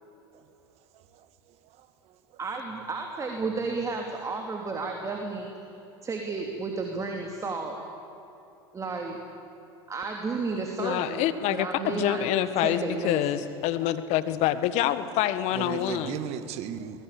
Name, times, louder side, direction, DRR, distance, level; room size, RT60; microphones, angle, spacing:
voice 1, 0.9-1.3 1.8-1.9 15.5-17.0, right 9 dB, 55° right, 11 dB, 1.8 m, -36 dB
voice 2, 2.4-5.5 6.0-7.8 8.7-9.2 9.9-11.3 11.5-13.4, right 4 dB, 25° right, 2 dB, 3.0 m, -32 dB
voice 3, 10.8-16.2, left 12 dB, 60° left, 13 dB, 1.6 m, -26 dB
23.5 x 20.5 x 8.6 m, 2.9 s
hypercardioid pair, 95°, 13 cm